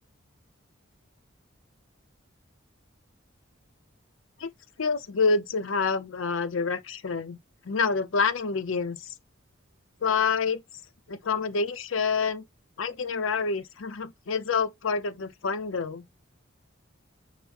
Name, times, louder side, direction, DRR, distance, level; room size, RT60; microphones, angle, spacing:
voice 1, 4.8-7.4 7.6-9.1 10.0-10.6 11.1-12.4 12.8-16.1, left 5 dB, 85° left, 0.6 m, -27 dB
6.1 x 2.1 x 3.4 m
head